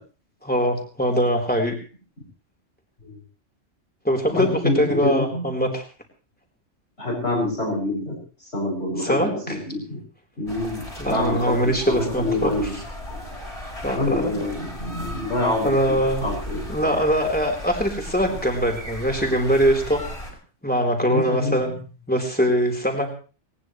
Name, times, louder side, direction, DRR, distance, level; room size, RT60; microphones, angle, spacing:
voice 1, 0.4-1.7 4.0-5.8 9.0-9.6 11.0-12.5 13.8-14.4 15.6-16.2 16.7-20.0 20.6-21.8 22.1-23.1, equal, 5° left, 2 dB, 4.2 m, -22 dB
voice 2, 4.3-5.4 7.0-10.0 10.4-11.6 11.9-12.7 13.1-13.2 13.9-16.6 21.0-21.6, left 2 dB, 60° left, -6 dB, 7.7 m, -26 dB
sound 1, 10.5-20.3, equal, 30° left, 5.4 m, -36 dB
20.5 x 20.0 x 3.3 m, 0.37 s
omnidirectional pair, 1.2 m